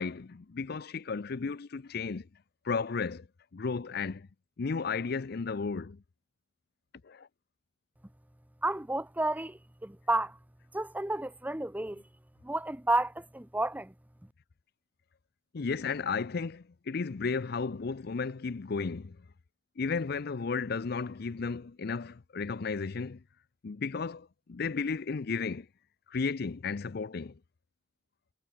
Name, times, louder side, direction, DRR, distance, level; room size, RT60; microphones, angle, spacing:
voice 1, 0.0-2.3 2.6-3.3 3.5-4.3 4.6-6.0 7.0-7.3 15.5-19.2 19.8-23.2 23.6-25.7 26.1-27.4, left 5 dB, 55° left, 0.5 m, -34 dB
voice 2, 8.6-10.4 10.7-12.0 12.4-13.9, right 2 dB, 10° right, 0.9 m, -31 dB
head